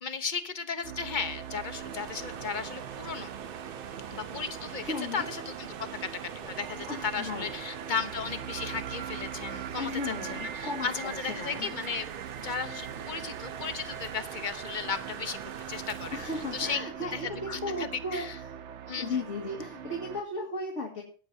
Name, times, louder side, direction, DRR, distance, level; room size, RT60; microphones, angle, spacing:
voice 1, 0.0-3.3 4.1-5.7 6.0-6.1 6.3-12.1 12.3-15.4 15.7-16.8 17.1-18.4 18.9-19.2, left 5 dB, 45° left, 9 dB, 1.1 m, -35 dB
sound 1, 0.8-20.2, right 9 dB, 80° right, 1.0 m, -42 dB
sound 2, 1.1-16.8, right 8 dB, 55° right, 0.9 m, -44 dB
voice 2, 4.8-5.3 6.9-7.5 9.8-11.1 11.4-11.7 16.1-18.3 19.0-21.0, left 2 dB, 85° left, 0 dB, 2.4 m, -35 dB
17.5 x 9.5 x 2.7 m, 0.40 s
omnidirectional pair, 1.2 m